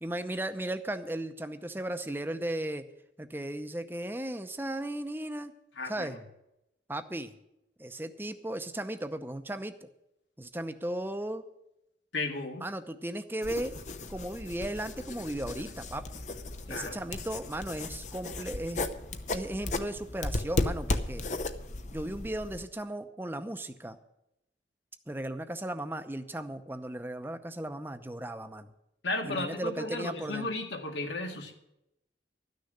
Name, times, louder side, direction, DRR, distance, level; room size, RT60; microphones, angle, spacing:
voice 1, 0.0-2.8 3.2-5.5 5.8-6.1 6.9-7.3 7.8-9.9 10.4-11.4 12.6-13.8 14.1-16.0 16.7-18.8 19.3-21.4 21.9-24.0 25.1-28.7 29.2-30.5, right 1 dB, 10° right, 9 dB, 0.7 m, -36 dB
voice 2, 5.8-6.2 12.1-12.7 16.7-17.0 29.0-31.5, left 2 dB, 85° left, 3 dB, 2.0 m, -34 dB
sound 1, 13.4-22.6, left 2 dB, 40° left, 0.7 m, -35 dB
13.0 x 6.6 x 9.8 m, 0.85 s
head